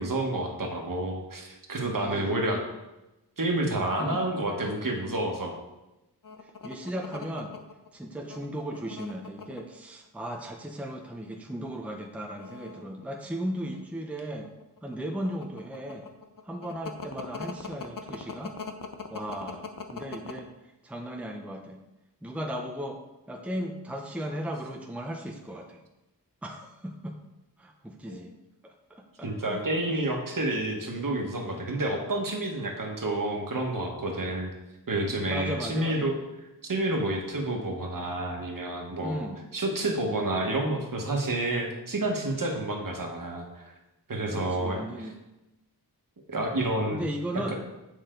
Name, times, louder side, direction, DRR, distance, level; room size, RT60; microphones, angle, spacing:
voice 1, 0.0-2.6 3.4-5.6 28.1-28.2 29.2-34.5 34.9-36.1 36.6-39.3 39.5-43.7 44.1-45.1 46.3-47.0 47.3-47.4, right 2 dB, 50° right, 1 dB, 1.6 m, -29 dB
voice 2, 1.9-2.4 4.0-4.2 6.4-7.5 7.9-14.5 14.8-16.1 16.4-18.6 19.1-20.5 20.8-21.8 22.2-23.0 23.3-25.8 26.4-27.2 27.6-28.3 28.6-29.6 29.9-30.0 35.3-36.1 39.0-39.4 44.3-45.2 46.9-47.6, equal, 5° right, 2 dB, 0.8 m, -36 dB
sound 1, 6.2-9.6 10.4-10.9 11.2-11.3 12.1-13.8 14.2-20.4, left 6 dB, 50° left, 0.8 m, -40 dB
8.4 x 6.7 x 3.9 m, 0.96 s
wide cardioid pair, 105°, 41 cm